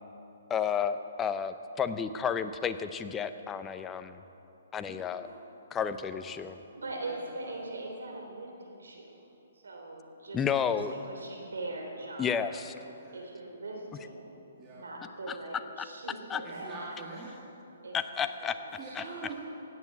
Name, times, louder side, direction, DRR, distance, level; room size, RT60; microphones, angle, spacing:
voice 1, 0.5-4.2 4.7-5.3 5.7-6.6 10.3-10.9 12.2-12.7 15.3-15.4 16.3-16.4 17.9-18.6 18.9-19.0, left 7 dB, 15° left, 10 dB, 0.6 m, -31 dB
voice 2, 4.8-5.3 5.8-6.4 7.0-7.1 7.4-7.5 12.8-13.2 14.6-14.8 16.4-17.4 18.8-19.4, right 4 dB, 25° right, -7 dB, 2.4 m, -45 dB
voice 3, 6.4-9.2 9.6-10.4 10.7-12.6 13.1-14.4 14.7-16.8 17.8-19.2, right 2 dB, 85° right, 2 dB, 3.4 m, -42 dB
16.0 x 9.3 x 7.3 m, 3.0 s
hypercardioid pair, 145°, 0 cm